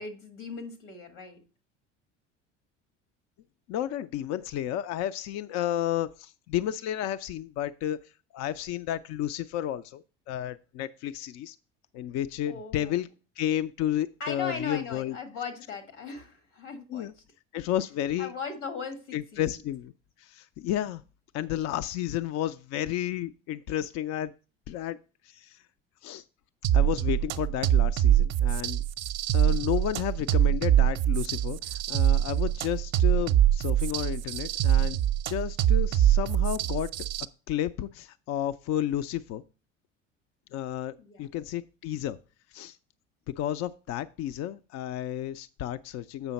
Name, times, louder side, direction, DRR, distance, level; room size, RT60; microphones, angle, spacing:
voice 1, 0.0-1.4 12.5-12.9 14.2-17.1 18.2-19.4 41.0-41.3, left 5 dB, 80° left, 7 dB, 1.7 m, -38 dB
voice 2, 3.7-8.0 8.3-11.6 11.9-13.1 13.4-15.2 16.9-17.1 17.5-18.3 19.1-19.9 20.2-21.0 21.3-24.3 24.7-25.0 25.2-25.6 26.0-26.2 26.7-28.8 29.3-35.0 35.3-37.1 37.5-39.4 40.5-42.2 42.5-42.8 43.4-46.3, left 11 dB, 50° left, 11 dB, 0.4 m, -32 dB
sound 1, 26.6-37.3, right 11 dB, 45° right, 0.6 m, -24 dB
8.0 x 5.5 x 4.1 m, 0.35 s
hypercardioid pair, 65°, 36 cm